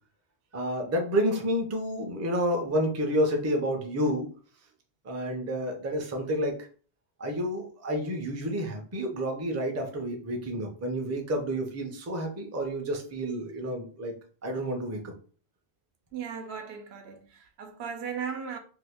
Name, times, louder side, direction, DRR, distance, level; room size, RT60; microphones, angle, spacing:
voice 1, 0.5-4.3 5.0-6.7 7.2-14.1 14.4-15.1, equal, 25° right, 0.4 m, -29 dB
voice 2, 16.1-18.6, right 7 dB, 80° right, 0.9 m, -37 dB
2.7 x 2.4 x 3.5 m
omnidirectional pair, 1.1 m